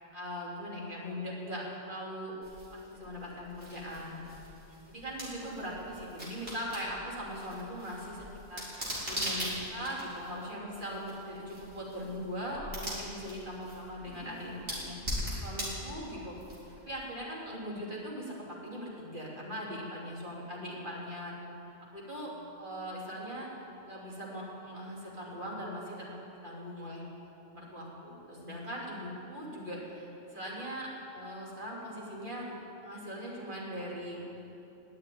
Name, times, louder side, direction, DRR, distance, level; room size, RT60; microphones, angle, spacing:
voice 1, 0.1-2.4 2.9-4.2 4.9-16.4 16.9-21.3 21.9-22.3 22.6-23.5 23.9-27.0 27.5-34.2, equal, 35° right, -4 dB, 3.5 m, -40 dB
sound 1, 2.4-17.0, equal, 50° right, 4.4 m, -41 dB
20.0 x 7.5 x 9.5 m, 2.9 s
omnidirectional pair, 1.5 m